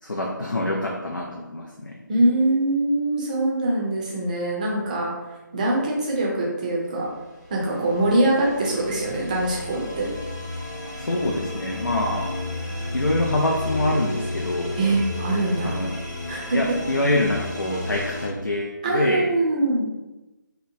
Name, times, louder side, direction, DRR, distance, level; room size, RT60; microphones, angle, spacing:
voice 1, 0.0-2.0 11.0-12.4 12.9-14.8 15.6-15.9 16.5-19.3, left 1 dB, 85° left, -2 dB, 0.4 m, -25 dB
voice 2, 2.1-5.1 5.5-7.1 7.5-10.1 14.8-15.7 16.3-16.6 18.8-19.8, right 1 dB, 25° right, -3 dB, 0.5 m, -23 dB
sound 1, 7.3-18.3, left 2 dB, 60° left, 1.0 m, -32 dB
2.9 x 2.1 x 2.6 m, 1.1 s
figure-of-eight pair, 150°, 11 cm